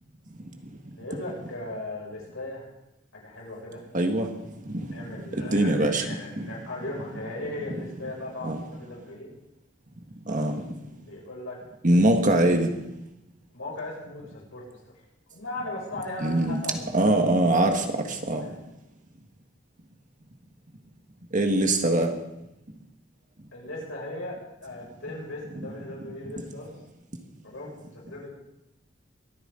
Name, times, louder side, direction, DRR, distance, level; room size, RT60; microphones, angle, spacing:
voice 1, 1.0-2.7 3.1-3.8 4.9-9.3 11.0-11.6 13.5-14.8 15.3-17.1 18.3-18.5 23.5-26.8 27.4-28.3, left 2 dB, 80° left, -3 dB, 6.5 m, -38 dB
voice 2, 3.9-4.3 4.6-4.7 5.3-6.1 6.4-6.5 8.4-8.6 10.3-10.6 11.8-12.8 16.2-16.6 16.9-18.5 21.3-22.1, right 1 dB, 40° right, 4 dB, 1.6 m, -22 dB
24.0 x 9.5 x 3.9 m, 0.89 s
head